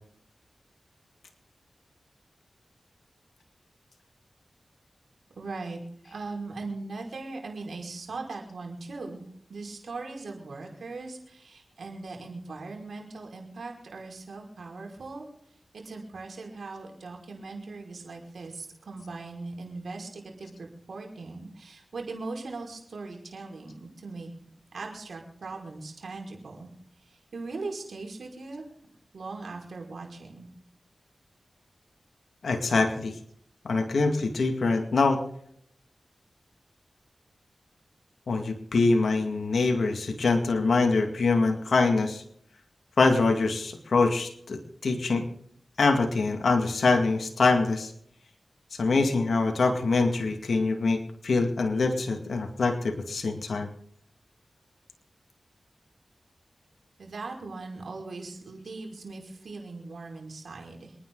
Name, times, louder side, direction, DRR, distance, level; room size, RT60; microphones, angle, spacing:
voice 1, 5.4-15.3 15.7-24.3 24.7-26.7 27.0-28.7 29.1-30.5 57.0-61.0, right 3 dB, 80° right, 2 dB, 5.4 m, -39 dB
voice 2, 32.4-33.2 33.6-35.2 38.3-42.2 43.0-45.2 45.8-47.9 48.7-53.7, left 3 dB, 80° left, 4 dB, 2.2 m, -24 dB
27.5 x 10.0 x 4.0 m, 0.68 s
cardioid pair, 40°, 0 cm